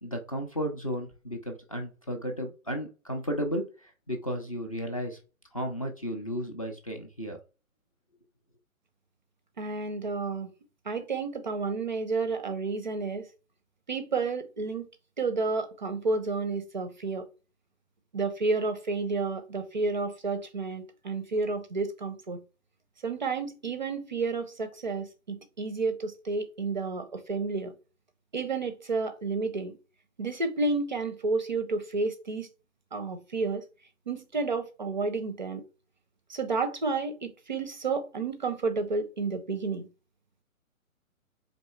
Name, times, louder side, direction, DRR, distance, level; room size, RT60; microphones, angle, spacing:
voice 1, 0.0-5.2 5.5-7.4, equal, 25° left, 0.4 m, -34 dB
voice 2, 9.6-10.5 10.9-13.3 13.9-14.9 15.2-17.3 18.1-22.4 23.0-27.7 28.3-29.8 30.2-32.5 32.9-33.6 34.1-35.6 36.3-39.9, right 3 dB, 35° right, 0.4 m, -31 dB
4.0 x 3.1 x 3.1 m
figure-of-eight pair, 135°, 43 cm